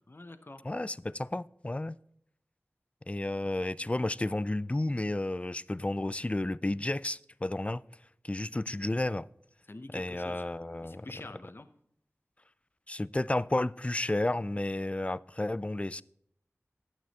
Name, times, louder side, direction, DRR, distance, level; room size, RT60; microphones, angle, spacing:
voice 1, 0.0-0.6 9.7-10.5 10.8-11.7, left 2 dB, 45° left, 0.8 m, -46 dB
voice 2, 0.6-2.0 3.1-7.8 8.2-9.3 9.9-11.1 12.9-16.0, left 2 dB, 25° left, 0.4 m, -32 dB
11.5 x 9.3 x 4.1 m
wide cardioid pair, 50°, 5 cm